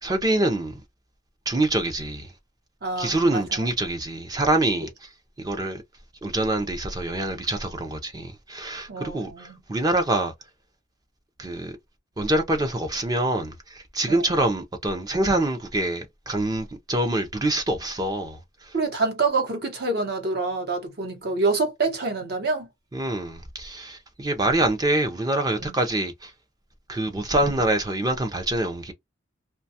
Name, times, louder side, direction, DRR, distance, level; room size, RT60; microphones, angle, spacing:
voice 1, 0.0-0.8 1.5-2.3 3.0-5.1 5.4-5.8 6.2-10.3 11.4-11.7 12.2-18.7 22.9-26.3 26.9-28.9, right 1 dB, 20° right, 0.4 m, -25 dB
voice 2, 2.8-3.7 8.9-9.6 14.1-14.3 18.7-22.7 25.6-25.8, right 3 dB, 50° right, 0.8 m, -27 dB
2.5 x 2.2 x 2.7 m
head